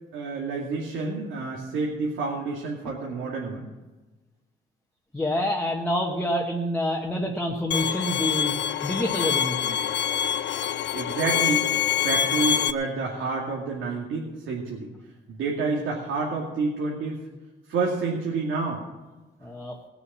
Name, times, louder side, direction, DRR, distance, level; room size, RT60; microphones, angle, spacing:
voice 1, 0.1-3.7 10.6-11.7 12.0-14.9 15.3-17.2 17.7-18.8, right 4 dB, 85° right, -3 dB, 2.4 m, -29 dB
voice 2, 5.1-8.5 8.8-9.8 19.4-19.8, left 1 dB, 5° left, -1 dB, 1.1 m, -27 dB
Bowed string instrument, 7.7-12.7, left 9 dB, 65° left, 0.6 m, -25 dB
19.0 x 7.0 x 7.4 m, 1.2 s
cardioid pair, 170°, 20 cm